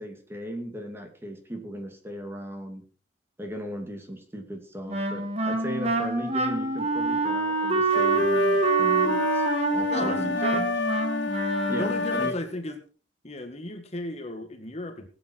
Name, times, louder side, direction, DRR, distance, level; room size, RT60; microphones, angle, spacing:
voice 1, 0.0-2.9 3.4-10.8 11.7-12.4, right 1 dB, 15° right, 4 dB, 2.5 m, -37 dB
Wind instrument woodwind instrument, 4.9-12.2, right 3 dB, 35° right, 2.0 m, -26 dB
sound 1, 7.9-12.4, left 4 dB, 70° left, 0.7 m, -29 dB
voice 2, 9.9-10.7 11.8-12.8 13.2-15.1, left 2 dB, 35° left, 6 dB, 1.9 m, -35 dB
19.5 x 8.8 x 4.5 m, 0.39 s
head